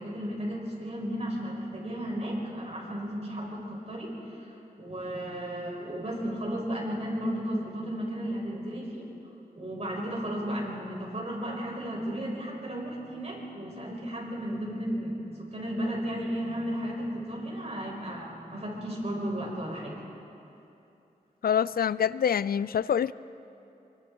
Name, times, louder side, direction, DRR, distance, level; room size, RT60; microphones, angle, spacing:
voice 1, 0.0-9.0 9.6-20.0, equal, 45° right, -3 dB, 6.8 m, -34 dB
voice 2, 21.4-23.1, left 8 dB, 80° left, 18 dB, 0.4 m, -26 dB
27.0 x 23.5 x 4.6 m, 2.9 s
wide cardioid pair, 65°, 15 cm